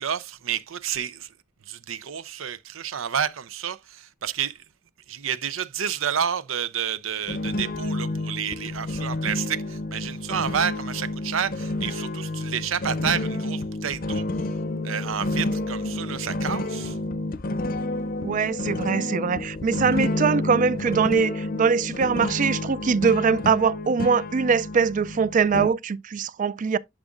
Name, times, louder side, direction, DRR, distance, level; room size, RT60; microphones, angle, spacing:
voice 1, 0.0-1.3 1.7-4.6 5.1-14.2 14.8-17.0, right 8 dB, 85° right, 0.6 m, -30 dB
sound 1, 7.3-25.7, left 2 dB, 45° left, 0.6 m, -30 dB
voice 2, 18.2-26.8, right 5 dB, 40° right, 0.4 m, -22 dB
11.0 x 4.9 x 2.5 m
head